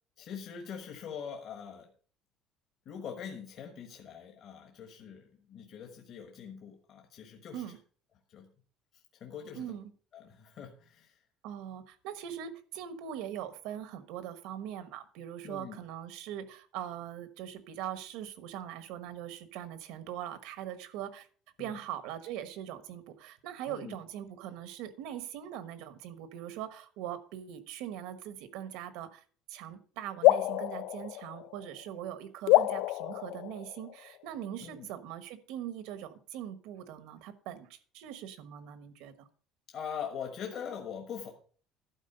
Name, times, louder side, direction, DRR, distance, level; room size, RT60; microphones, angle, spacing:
voice 1, 0.2-1.9 2.8-7.7 8.3-8.5 8.9-9.8 10.1-11.2 15.4-15.8 21.6-21.8 23.7-24.0 34.6-34.9 39.7-41.3, left 7 dB, 40° left, 3 dB, 1.2 m, -43 dB
voice 2, 9.5-9.9 11.4-21.3 21.6-29.2 29.5-39.3, right 10 dB, 70° right, 11 dB, 1.2 m, -41 dB
sound 1, 30.2-31.9 32.5-34.2, left 17 dB, 65° left, 0.4 m, -27 dB
12.0 x 4.5 x 6.6 m, 0.42 s
cardioid pair, 180°, 0 cm